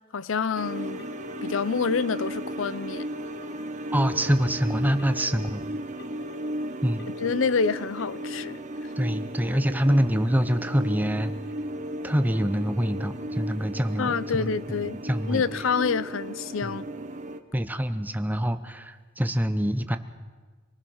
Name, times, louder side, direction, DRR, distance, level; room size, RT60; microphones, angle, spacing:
voice 1, 0.1-1.0 1.4-3.1 7.2-8.6 14.0-15.0 15.3-16.8, left 5 dB, 75° left, 0.6 m, -27 dB
sound 1, 0.5-17.4, right 1 dB, 40° right, 1.2 m, -35 dB
Telephone, 1.0-1.5 2.0-2.5 3.0-3.5 4.0-4.5 5.0-5.5 6.0-6.5 7.0-7.5 8.0-8.5, left 6 dB, 60° left, 1.9 m, -44 dB
voice 2, 3.9-5.6 6.8-7.1 9.0-11.3 12.0-14.5 15.0-15.5 16.6-16.8 17.5-20.0, equal, 10° right, 0.9 m, -25 dB
26.0 x 19.5 x 6.4 m
head